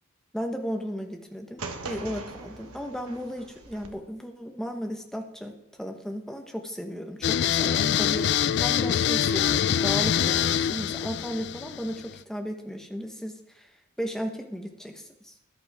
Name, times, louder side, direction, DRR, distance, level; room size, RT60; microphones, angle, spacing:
voice 1, 0.3-5.5 5.8-13.7 14.0-15.3, equal, ahead, 3 dB, 1.0 m, -35 dB
sound 1, 1.6-3.9, right 3 dB, 80° right, 1.4 m, -40 dB
sound 2, 7.2-12.2, left 9 dB, 50° left, 0.3 m, -25 dB
14.0 x 11.0 x 3.5 m, 0.88 s
head